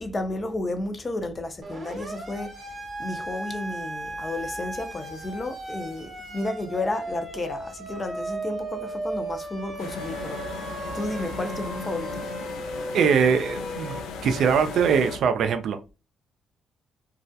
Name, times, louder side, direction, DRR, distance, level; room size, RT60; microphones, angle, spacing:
voice 1, 0.0-2.5 3.0-10.4 10.9-12.2, left 2 dB, 30° left, 0.5 m, -32 dB
Siren, 1.6-14.0, right 2 dB, 40° right, 0.8 m, -36 dB
sound 1, 9.8-15.2, left 4 dB, 90° left, 0.3 m, -36 dB
voice 2, 12.9-13.9 14.2-15.9, right 6 dB, 70° right, 0.3 m, -22 dB
2.3 x 2.1 x 2.6 m
cardioid pair, 90°, 0 cm